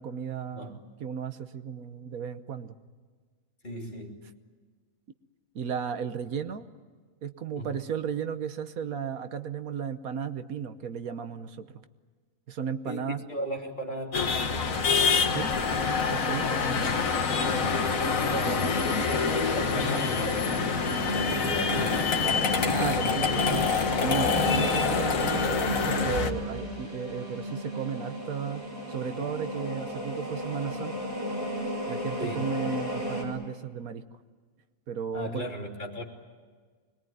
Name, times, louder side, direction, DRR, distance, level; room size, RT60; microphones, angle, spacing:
voice 1, 0.0-2.7 5.5-6.7 7.2-11.7 12.5-13.2 15.3-15.5 16.1-16.6 22.7-23.7 24.0-28.6 28.9-31.1 31.9-34.0 34.9-35.4, right 7 dB, 85° right, 10 dB, 1.5 m, -34 dB
voice 2, 3.6-4.2 7.5-7.8 12.8-14.5 17.6-20.5 20.8-22.0 32.2-32.5 35.1-36.0, equal, 35° left, 0 dB, 3.2 m, -37 dB
sound 1, 14.1-26.3, left 5 dB, 70° left, 1.8 m, -26 dB
sound 2, 20.4-33.2, equal, 10° right, 6.7 m, -34 dB
25.5 x 21.5 x 9.3 m, 1.5 s
omnidirectional pair, 1.5 m